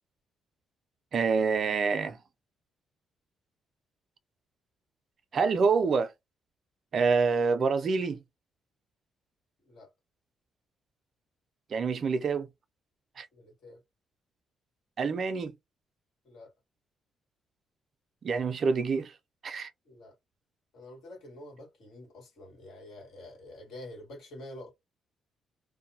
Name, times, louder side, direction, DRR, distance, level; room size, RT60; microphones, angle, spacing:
voice 1, 1.1-2.2 5.3-6.1 6.9-8.2 11.7-12.5 13.2-13.3 15.0-15.5 18.2-19.1 19.4-19.7, right 5 dB, 50° right, 0.4 m, -26 dB
voice 2, 13.3-13.8 16.2-16.5 19.8-20.1 20.7-24.7, left 1 dB, 75° left, 1.5 m, -47 dB
2.6 x 2.1 x 2.7 m
cardioid pair, 90°, 0 cm